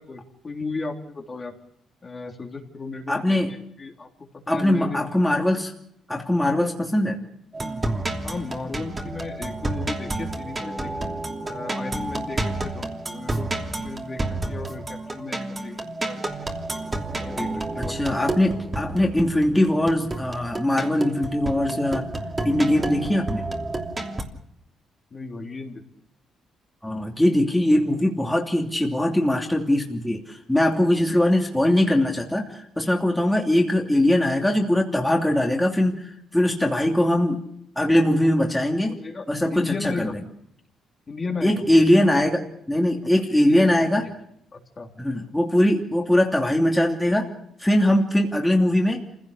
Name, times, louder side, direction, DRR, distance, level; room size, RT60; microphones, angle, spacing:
voice 1, 0.0-1.5 2.0-5.0 8.2-11.1 11.4-14.2 14.5-16.2 17.2-18.3 25.1-25.8 38.9-39.3 39.5-40.2 41.1-41.8 43.3-43.7 44.0-44.1 44.5-44.9, left 3 dB, 35° left, 1 dB, 3.4 m, -35 dB
voice 2, 3.1-3.5 4.5-5.7 6.1-7.3 17.8-22.1 22.4-23.4 26.8-37.4 37.8-39.0 39.3-40.2 41.4-44.0 45.0-47.3 47.6-49.1, left 1 dB, 5° left, 0 dB, 2.9 m, -21 dB
sound 1, 7.5-24.2, right 2 dB, 25° right, 3.0 m, -30 dB
27.0 x 16.5 x 6.7 m, 0.76 s
cardioid pair, 90°, 0 cm